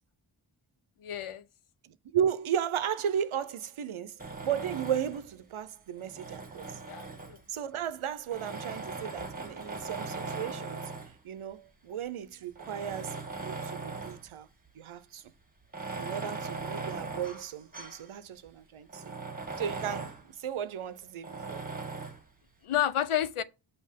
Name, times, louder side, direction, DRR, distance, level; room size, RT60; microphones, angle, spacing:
voice 1, 1.0-1.4 6.9-7.4 9.2-9.3 16.1-16.2 22.6-23.4, left 11 dB, 85° left, 0.6 m, -31 dB
voice 2, 1.8-6.8 7.5-10.8 11.2-14.5 14.7-15.2 16.0-19.1 19.6-21.7, right 9 dB, 80° right, 0.7 m, -35 dB
Tools, 4.2-5.3 6.0-7.6 8.3-11.2 11.9-12.0 12.5-14.3 14.7-14.8 15.6-18.1 18.5-18.6 18.9-20.3 21.2-22.2, right 3 dB, 15° right, 1.2 m, -39 dB
6.5 x 3.0 x 5.1 m
wide cardioid pair, 55°, 49 cm